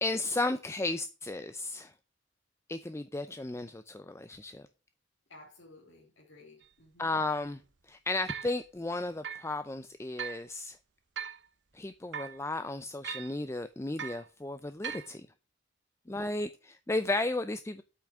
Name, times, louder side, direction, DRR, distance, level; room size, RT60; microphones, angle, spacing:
voice 1, 0.0-1.9 2.7-4.7 7.0-7.6 7.9-10.8 11.7-15.3 16.1-17.8, left 2 dB, 15° left, 0.5 m, -34 dB
voice 2, 5.3-7.2 16.0-16.3, left 2 dB, 85° left, 3.1 m, -55 dB
sound 1, 6.6-6.7 7.3-7.5 8.3-8.6 9.2-9.5 10.2-10.4 11.2-11.5 12.1-12.4 13.0-13.4 14.0-14.3 14.8-15.1, right 7 dB, 65° right, 0.9 m, -39 dB
8.4 x 6.0 x 7.3 m
head